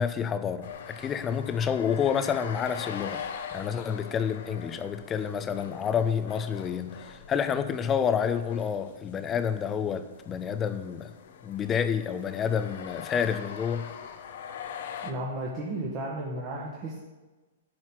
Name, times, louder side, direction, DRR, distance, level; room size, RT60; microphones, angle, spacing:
voice 1, 0.0-3.3 3.5-11.1 11.4-13.9, left 7 dB, 25° left, 10 dB, 0.7 m, -29 dB
sound 1, 0.6-15.1, left 7 dB, 60° left, 0.9 m, -43 dB
voice 2, 15.0-17.0, right 1 dB, 35° right, -5 dB, 1.7 m, -34 dB
11.0 x 4.4 x 6.1 m, 1.2 s
hypercardioid pair, 115°, 0 cm